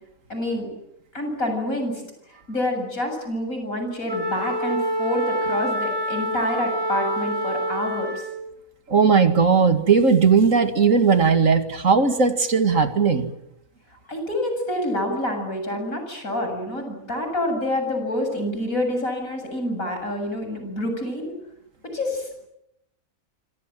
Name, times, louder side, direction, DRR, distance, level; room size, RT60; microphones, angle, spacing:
voice 1, 0.3-0.7 1.1-2.0 2.5-8.1 14.1-21.3 21.9-22.3, left 1 dB, 80° left, 5 dB, 8.1 m, -27 dB
Wind instrument woodwind instrument, 4.1-8.4, right 1 dB, 15° left, 6.5 m, -27 dB
voice 2, 8.9-13.3, right 5 dB, 70° right, 8 dB, 2.5 m, -18 dB
27.0 x 26.0 x 7.7 m, 0.82 s
omnidirectional pair, 1.4 m